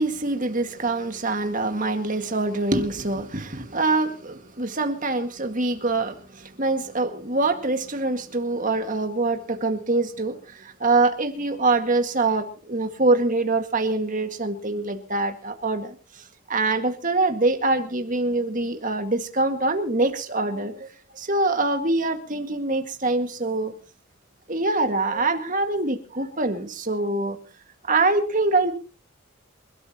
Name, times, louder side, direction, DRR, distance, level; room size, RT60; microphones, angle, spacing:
voice 1, 0.0-20.9 21.1-23.7 24.5-27.4 27.8-28.7, right 2 dB, 35° right, 6 dB, 1.9 m, -24 dB
27.5 x 13.0 x 3.0 m, 0.36 s
head